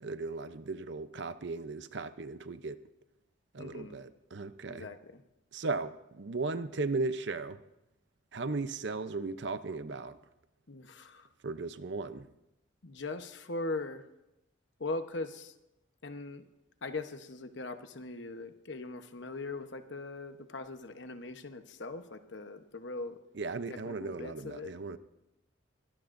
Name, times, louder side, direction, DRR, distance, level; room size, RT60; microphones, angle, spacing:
voice 1, 0.0-2.8 3.5-4.9 5.5-7.6 8.3-10.2 11.4-12.3 23.3-25.0, right 3 dB, 60° right, 12 dB, 0.7 m, -36 dB
voice 2, 3.6-4.0 4.7-5.2 10.7-11.3 12.8-14.0 14.8-15.5 16.0-16.4 16.8-23.2 23.7-24.7, left 2 dB, 65° left, 8 dB, 1.0 m, -40 dB
22.5 x 17.5 x 2.6 m, 0.93 s
head